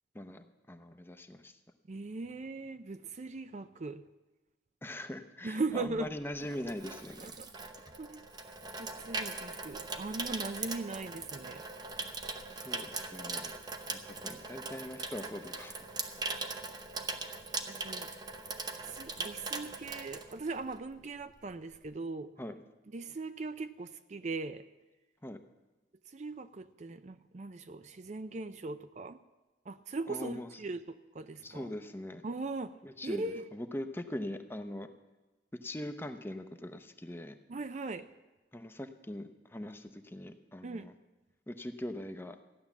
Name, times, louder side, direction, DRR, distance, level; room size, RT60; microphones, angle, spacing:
voice 1, 0.1-1.6 4.8-7.3 12.5-13.5 14.0-15.8 16.4-16.6 22.4-22.5 25.2-25.4 30.1-30.5 31.4-32.2 32.8-34.9 35.6-37.4 38.5-40.9 41.5-42.4, left 1 dB, 10° left, 8 dB, 0.7 m, -42 dB
voice 2, 1.9-4.0 5.4-6.1 7.2-7.5 8.0-8.2 8.8-11.6 17.7-18.1 18.8-22.3 22.9-24.6 26.1-29.2 29.7-31.7 32.2-32.7 33.0-33.5 37.5-38.1 40.6-40.9, right 3 dB, 40° right, 11 dB, 0.4 m, -39 dB
Water tap faucet / Sink (filling or washing), 5.9-20.9 21.2-21.5, right 3 dB, 20° right, 0.8 m, -40 dB
15.0 x 10.0 x 7.2 m, 1.2 s
head